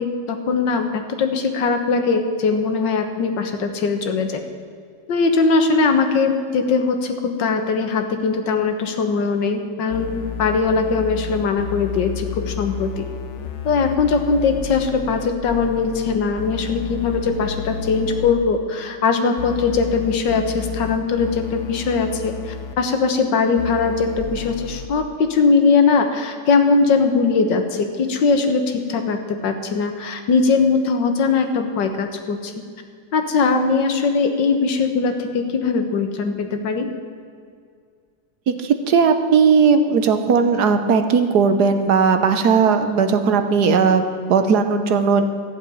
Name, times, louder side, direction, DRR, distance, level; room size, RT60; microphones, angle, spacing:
voice 1, 0.0-4.4 5.1-13.1 13.6-32.5 33.1-36.9, left 4 dB, 85° left, 6 dB, 1.9 m, -20 dB
sound 1, 9.9-18.3 19.4-22.8 23.6-24.9, left 9 dB, 55° left, 0.8 m, -32 dB
voice 2, 38.5-45.2, right 5 dB, 65° right, 8 dB, 1.4 m, -17 dB
14.0 x 7.3 x 9.3 m, 2.2 s
omnidirectional pair, 1.9 m